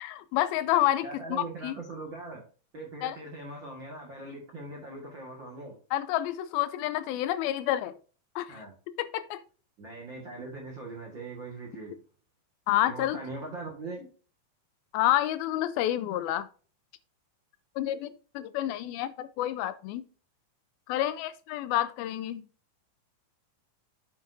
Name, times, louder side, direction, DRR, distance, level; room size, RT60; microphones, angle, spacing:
voice 1, 0.0-1.8 3.0-3.2 5.9-7.9 8.4-8.6 9.0-9.4 12.7-13.2 14.9-16.5 17.8-20.0 20.9-22.4, left 13 dB, 85° left, 2.3 m, -29 dB
voice 2, 1.0-2.4 2.7-5.8 8.5-8.7 9.8-12.0 12.8-14.1, right 2 dB, 50° right, 1.5 m, -41 dB
8.6 x 7.7 x 2.6 m
omnidirectional pair, 4.4 m